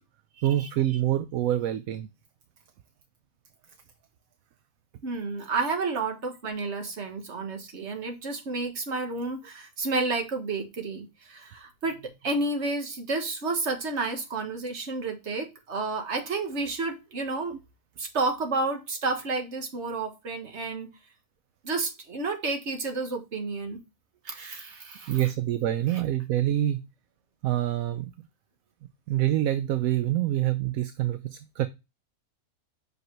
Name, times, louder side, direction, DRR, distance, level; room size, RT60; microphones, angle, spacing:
voice 1, 0.4-2.1 25.1-26.8 27.4-28.1 29.1-31.7, right 13 dB, 75° right, 1.0 m, -26 dB
voice 2, 5.0-17.5 18.0-20.9 21.6-23.8 24.2-25.2 25.9-26.0, right 3 dB, 50° right, 1.6 m, -31 dB
5.8 x 5.4 x 3.0 m
omnidirectional pair, 1.6 m